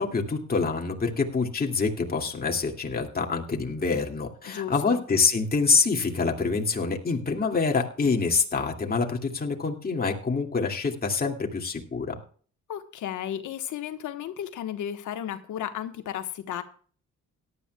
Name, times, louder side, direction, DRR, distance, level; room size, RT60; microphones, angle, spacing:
voice 1, 0.0-12.1, left 4 dB, 30° left, 2.4 m, -26 dB
voice 2, 4.5-5.0 12.7-16.6, left 10 dB, 80° left, 1.3 m, -34 dB
17.5 x 11.5 x 2.3 m
cardioid pair, 90°, 30 cm